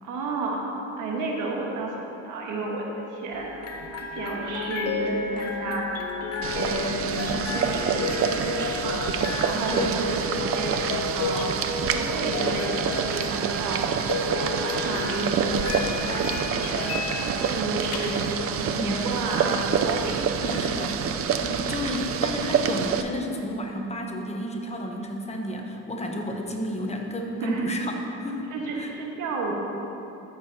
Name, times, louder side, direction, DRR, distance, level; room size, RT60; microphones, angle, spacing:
voice 1, 0.0-0.6 1.0-3.7 4.1-5.9 6.2-10.7 11.0-11.5 11.8-13.9 14.3-15.8 16.1-16.8 17.2-18.2 18.5-20.5 27.4-27.7 28.5-29.5, right 3 dB, 80° right, -1 dB, 1.5 m, -32 dB
sound 1, 3.3-22.5, left 4 dB, 50° left, 0.9 m, -33 dB
Boiling, 6.4-23.0, right 7 dB, 45° right, 0.5 m, -27 dB
voice 2, 20.4-21.0 21.4-28.5 28.8-28.9, left 1 dB, 20° left, 2 dB, 1.0 m, -31 dB
14.0 x 7.0 x 2.8 m, 2.9 s
cardioid pair, 95°, 31 cm